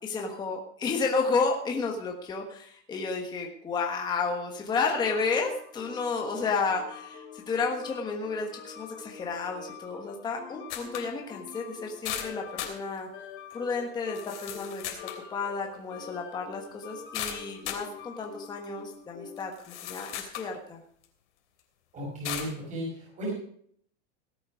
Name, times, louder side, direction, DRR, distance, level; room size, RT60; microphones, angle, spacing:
voice 1, 0.0-13.1 13.5-15.0 15.3-20.8, left 4 dB, 10° left, 1 dB, 1.3 m, -32 dB
sound 1, 4.8-19.6, left 7 dB, 35° left, 2.5 m, -46 dB
sound 2, 10.7-11.1 11.5-11.6 12.0-12.8 13.5-13.6 14.1-15.2 17.1-17.9 18.6-18.7 19.4-20.5 21.0-21.1 22.2-22.5, left 10 dB, 75° left, 3.3 m, -36 dB
voice 2, 21.9-23.3, equal, 20° right, -3 dB, 5.6 m, -35 dB
17.5 x 8.6 x 5.1 m, 0.63 s
supercardioid pair, 170°, 35 cm